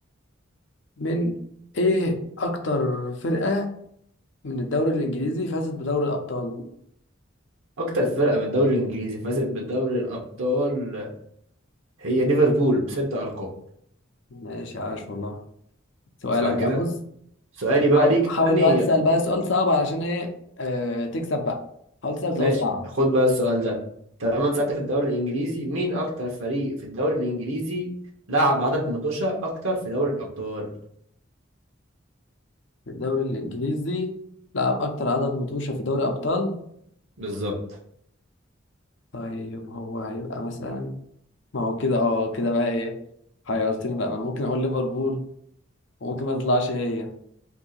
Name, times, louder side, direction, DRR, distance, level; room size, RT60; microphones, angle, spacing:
voice 1, 1.0-1.4 1.7-3.7 4.4-6.7 14.3-15.4 16.2-16.9 17.9-20.3 20.6-21.6 22.0-22.8 32.9-34.1 34.5-36.5 39.1-40.9 41.5-42.9 43.5-45.2 46.0-47.1, left 2 dB, 65° left, 4 dB, 0.6 m, -25 dB
voice 2, 7.8-11.1 12.0-13.5 16.4-16.8 17.6-18.8 22.3-22.6 23.0-23.8 24.2-27.9 28.3-30.7 37.2-37.5, right 1 dB, 85° right, -2 dB, 0.9 m, -24 dB
2.7 x 2.7 x 4.1 m, 0.70 s
head